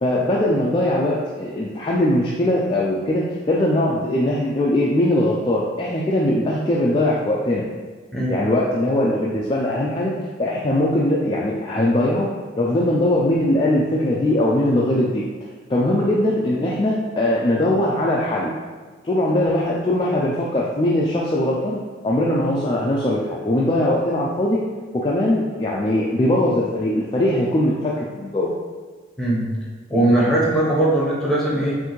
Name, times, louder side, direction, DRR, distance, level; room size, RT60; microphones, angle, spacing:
voice 1, 0.0-7.6 8.3-10.1 10.4-12.3 12.6-15.2 15.7-18.5 19.0-21.8 22.0-24.6 24.9-28.5, left 1 dB, 25° left, -4 dB, 0.3 m, -20 dB
voice 2, 29.9-31.8, right 1 dB, 5° left, -6 dB, 0.8 m, -19 dB
5.6 x 2.6 x 3.0 m, 1.4 s
head